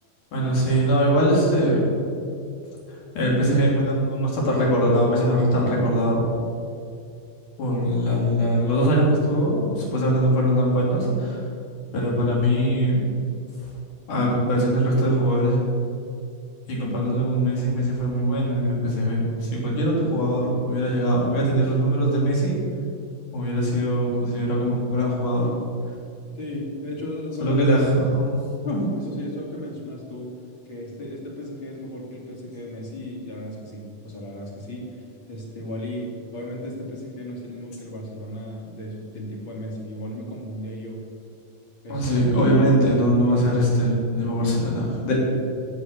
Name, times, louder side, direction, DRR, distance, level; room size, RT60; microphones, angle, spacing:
voice 1, 0.3-1.9 2.9-6.2 7.6-11.4 11.9-13.0 14.1-15.6 16.7-22.5 23.3-25.6 27.4-28.4 41.9-45.2, equal, 65° left, -3 dB, 4.8 m, -21 dB
voice 2, 26.3-27.6 28.6-30.3 30.7-41.0 41.8-42.0, left 1 dB, 40° left, -2 dB, 3.1 m, -34 dB
16.0 x 8.5 x 6.8 m, 2.5 s
omnidirectional pair, 3.9 m